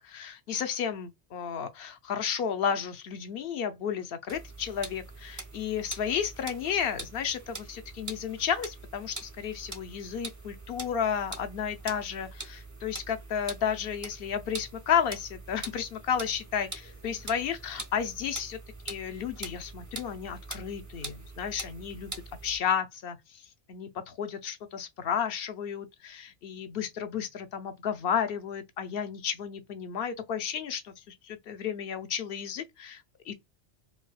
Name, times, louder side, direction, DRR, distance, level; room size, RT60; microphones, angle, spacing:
voice 1, 0.0-18.6 18.9-22.1 22.4-23.4 23.7-33.3, left 8 dB, 60° left, 0.8 m, -32 dB
sound 1, 4.3-22.6, right 2 dB, 20° right, 0.5 m, -44 dB
4.8 x 2.2 x 2.3 m
omnidirectional pair, 1.2 m